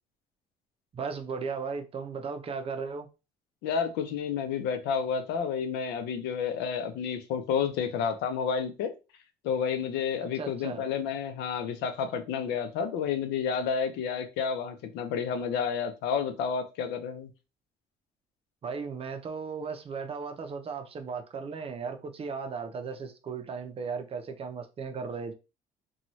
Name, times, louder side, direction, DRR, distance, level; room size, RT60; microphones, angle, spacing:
voice 1, 0.9-3.1 10.3-10.8 18.6-25.3, right 5 dB, 35° right, 0.5 m, -36 dB
voice 2, 3.6-8.9 9.4-17.3, left 6 dB, 85° left, 0.6 m, -30 dB
2.6 x 2.3 x 3.0 m
cardioid pair, 110°, 17 cm